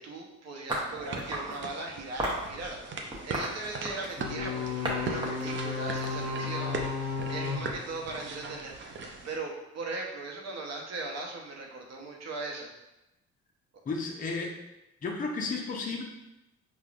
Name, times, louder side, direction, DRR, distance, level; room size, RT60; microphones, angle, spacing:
voice 1, 0.0-12.7, right 3 dB, 60° right, 0 dB, 0.9 m, -39 dB
sound 1, 0.7-1.6 2.2-2.5 3.1-4.2 4.8-5.0 5.2-6.6, right 1 dB, 15° right, 0.8 m, -34 dB
sound 2, 1.0-9.4, right 3 dB, 40° right, 0.5 m, -40 dB
sound 3, 4.2-8.6, left 4 dB, 65° left, 0.9 m, -34 dB
voice 2, 13.9-14.5 15.0-16.0, left 3 dB, 30° left, 0 dB, 0.5 m, -33 dB
5.0 x 2.3 x 2.4 m, 0.93 s
cardioid pair, 90°, 30 cm